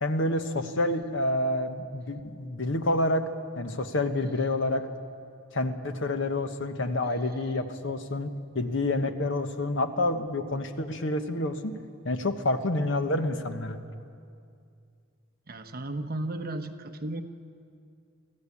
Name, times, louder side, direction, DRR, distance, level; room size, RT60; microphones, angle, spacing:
voice 1, 0.0-3.3 3.6-4.9 5.5-11.7 12.0-13.8, left 2 dB, 60° left, 9 dB, 1.2 m, -28 dB
voice 2, 15.5-17.2, right 1 dB, 45° right, 6 dB, 1.1 m, -34 dB
24.0 x 15.5 x 8.5 m, 2.4 s
head